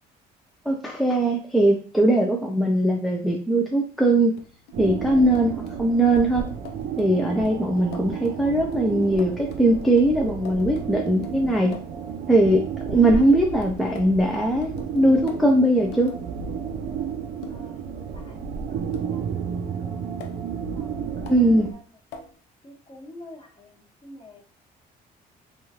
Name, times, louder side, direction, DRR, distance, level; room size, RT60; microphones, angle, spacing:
voice 1, 0.6-4.3 4.8-6.4 7.0-11.7 12.3-16.1 21.3-21.7, right 1 dB, ahead, 0 dB, 0.4 m, -20 dB
sound 1, 4.4-12.0 13.6-16.2 17.4-17.7 18.9-19.2 20.2-20.4 21.3-21.4 22.1-22.4, left 4 dB, 80° left, 0.6 m, -45 dB
sound 2, 4.7-21.7, right 7 dB, 60° right, 0.5 m, -32 dB
voice 2, 17.5-20.1 20.7-21.8 22.6-24.4, left 1 dB, 30° left, -1 dB, 1.1 m, -47 dB
3.0 x 2.3 x 2.8 m, 0.39 s
cardioid pair, 110°, 17 cm